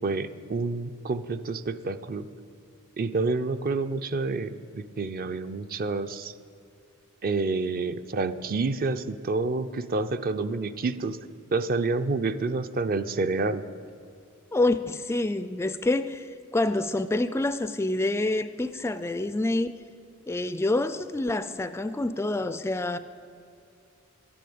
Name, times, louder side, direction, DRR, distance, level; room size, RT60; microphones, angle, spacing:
voice 1, 0.0-2.3 3.0-6.3 7.2-11.2 11.5-13.6, right 3 dB, 45° right, 11 dB, 0.5 m, -28 dB
voice 2, 14.5-19.7 20.3-23.0, left 2 dB, 10° left, 12 dB, 0.3 m, -27 dB
12.0 x 10.0 x 8.6 m, 2.6 s
head